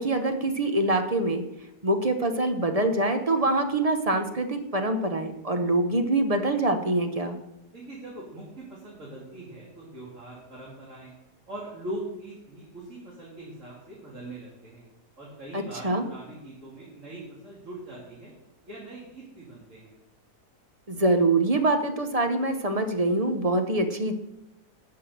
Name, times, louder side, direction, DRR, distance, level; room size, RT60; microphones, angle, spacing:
voice 1, 0.0-1.4 1.8-7.4 15.5-16.1 20.9-24.1, right 2 dB, 30° right, 6 dB, 0.7 m, -25 dB
voice 2, 7.7-11.1 11.5-14.8 15.2-18.3 18.6-20.0, right 1 dB, 45° right, -6 dB, 3.3 m, -41 dB
11.5 x 5.8 x 7.7 m, 0.93 s
omnidirectional pair, 1.8 m